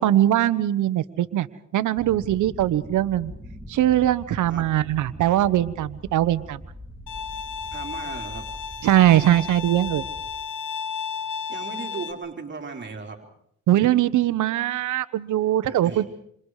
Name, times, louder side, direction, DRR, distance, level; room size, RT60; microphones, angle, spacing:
voice 1, 0.0-1.5 1.7-3.3 3.7-6.6 8.8-10.1 13.7-16.0, right 13 dB, 80° right, 14 dB, 1.2 m, -21 dB
sound 1, 2.0-10.3, left 1 dB, 5° right, 2.5 m, -42 dB
Bowed string instrument, 7.1-12.1, left 6 dB, 90° left, 2.4 m, -33 dB
voice 2, 7.7-8.5 11.5-13.2 15.7-16.1, right 4 dB, 40° right, 2 dB, 4.0 m, -36 dB
27.5 x 27.0 x 5.0 m, 0.70 s
cardioid pair, 90°, 30 cm